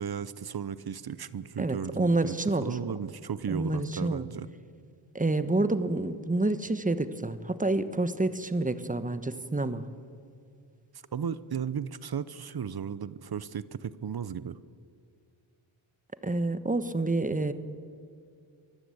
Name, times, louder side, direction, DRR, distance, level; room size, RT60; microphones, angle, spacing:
voice 1, 0.0-4.5 11.1-14.6, right 7 dB, 50° right, 16 dB, 0.8 m, -35 dB
voice 2, 1.6-2.8 3.5-4.3 5.1-9.9 16.2-17.5, right 2 dB, 15° right, 12 dB, 1.2 m, -28 dB
24.0 x 14.5 x 8.6 m, 2.4 s
cardioid pair, 75°, 48 cm